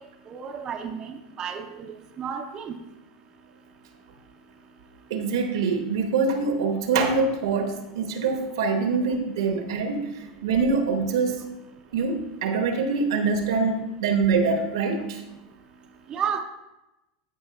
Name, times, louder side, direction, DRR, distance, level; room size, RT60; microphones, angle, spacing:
voice 1, 0.3-2.8 16.1-16.4, right 7 dB, 30° right, 3 dB, 0.6 m, -32 dB
voice 2, 5.1-10.1 10.4-11.3 11.9-15.2, right 4 dB, 85° right, 4 dB, 1.2 m, -24 dB
13.5 x 5.1 x 2.3 m, 0.97 s
hypercardioid pair, 115°, 2 cm